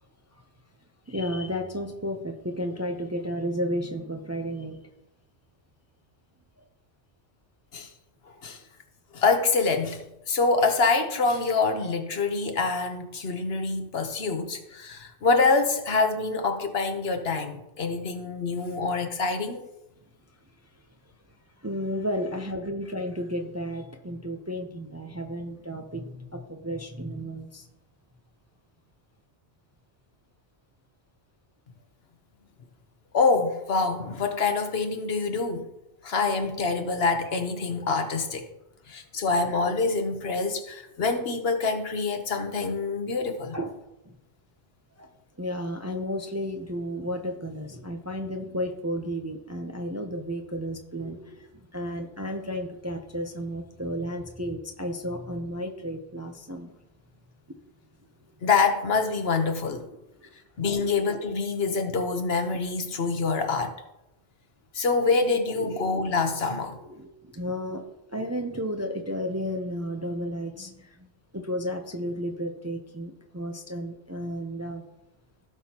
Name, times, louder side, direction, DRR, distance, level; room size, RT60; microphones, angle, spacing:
voice 1, 1.1-4.8 21.6-27.7 43.5-43.7 44.0-44.2 45.0-45.1 45.4-56.7 57.5-57.6 60.2-60.3 60.7-60.9 65.6-65.8 66.8-71.1 71.3-74.8, equal, 15° right, 0.6 m, -33 dB
voice 2, 9.1-19.7 33.1-35.7 36.0-38.4 38.9-43.5 58.4-59.8 60.6-63.7 64.7-66.8, left 4 dB, 60° left, 1.2 m, -26 dB
17.0 x 6.1 x 2.9 m
omnidirectional pair, 1.2 m